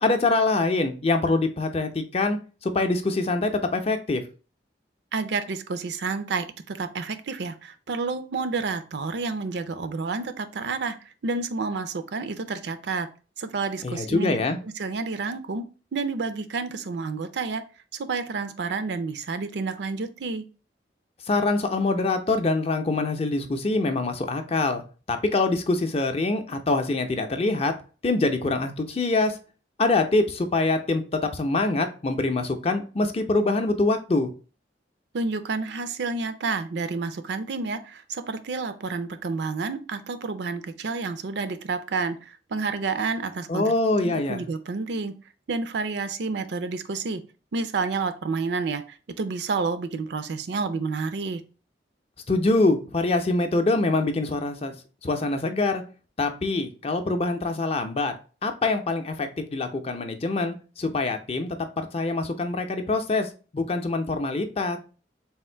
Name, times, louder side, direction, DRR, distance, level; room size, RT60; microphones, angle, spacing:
voice 1, 0.0-4.2 13.8-14.6 21.3-24.8 25.1-27.7 28.0-29.4 29.8-34.3 43.5-44.5 52.3-54.7 55.0-55.8 56.2-58.1 58.4-61.6 61.9-64.8, left 3 dB, 35° left, 7 dB, 0.5 m, -24 dB
voice 2, 5.1-13.1 13.4-14.4 14.6-15.6 15.9-17.6 17.9-20.4 35.1-43.7 44.0-45.2 45.5-47.2 47.5-51.4, right 4 dB, 65° right, 11 dB, 0.4 m, -30 dB
3.5 x 2.5 x 4.3 m, 0.35 s
head